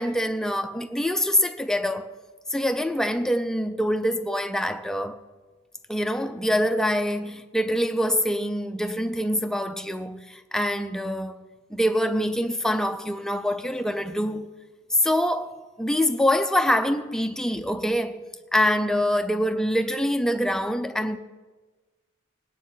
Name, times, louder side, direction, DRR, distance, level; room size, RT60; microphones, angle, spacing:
voice 1, 0.0-2.2 2.5-5.2 5.9-11.4 11.7-14.5 14.9-18.2 18.5-21.2, equal, 5° left, 0.5 m, -25 dB
19.0 x 9.5 x 3.9 m
head